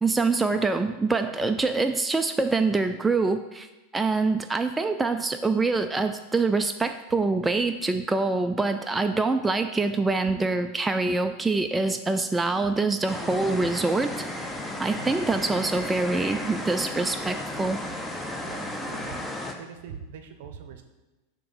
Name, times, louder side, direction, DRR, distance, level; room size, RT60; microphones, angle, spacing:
voice 1, 0.0-3.7 3.9-14.1 14.8-17.8, right 3 dB, 10° right, 7 dB, 0.3 m, -25 dB
sound 1, 13.1-19.5, left 1 dB, 10° left, 0.7 m, -34 dB
voice 2, 14.9-15.4 18.5-19.3 19.6-20.8, right 7 dB, 65° right, 7 dB, 0.7 m, -42 dB
6.6 x 2.9 x 5.4 m, 1.1 s
hypercardioid pair, 90°, 0 cm